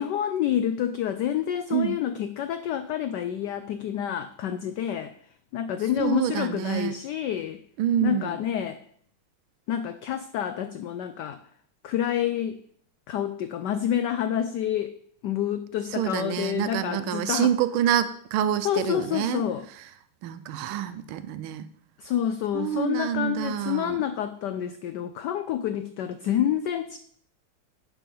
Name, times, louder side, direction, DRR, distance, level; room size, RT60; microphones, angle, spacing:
voice 1, 0.0-5.1 5.5-7.6 8.0-8.8 9.7-11.4 11.8-12.6 13.1-15.0 15.2-17.5 18.6-19.7 22.0-27.0, left 10 dB, 85° left, 10 dB, 0.9 m, -28 dB
voice 2, 6.0-6.9 7.8-8.4 15.9-19.4 20.2-21.6 22.5-24.0, right 10 dB, 80° right, 12 dB, 1.5 m, -27 dB
10.5 x 4.8 x 5.3 m, 0.63 s
omnidirectional pair, 2.4 m